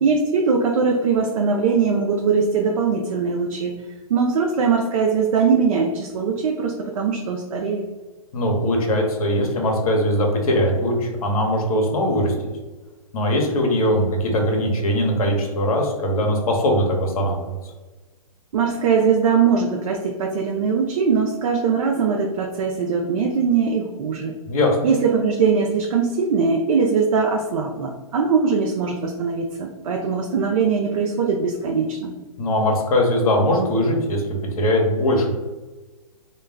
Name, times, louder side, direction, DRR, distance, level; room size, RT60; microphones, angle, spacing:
voice 1, 0.0-3.7 4.1-7.8 18.5-24.3 24.8-32.1, right 5 dB, 70° right, 1 dB, 0.4 m, -21 dB
voice 2, 8.3-12.3 13.1-17.5 24.5-24.8 32.4-34.2 34.6-35.4, left 1 dB, 75° left, 1 dB, 0.8 m, -20 dB
2.2 x 2.2 x 3.3 m, 1.2 s
hypercardioid pair, 145°, 19 cm